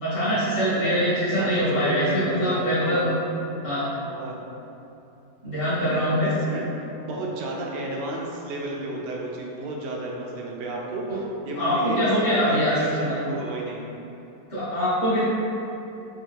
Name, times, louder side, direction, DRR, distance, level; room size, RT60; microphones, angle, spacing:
voice 1, 0.0-3.1 3.6-3.9 5.4-6.3 11.1-11.2 11.5-12.8 13.0-13.1 14.5-15.2, equal, 50° left, -12 dB, 1.8 m, -23 dB
voice 2, 1.4-3.0 4.0-4.4 5.8-12.1 12.4-13.8, right 2 dB, 85° right, -2 dB, 1.2 m, -32 dB
4.4 x 2.3 x 3.3 m, 2.9 s
omnidirectional pair, 1.8 m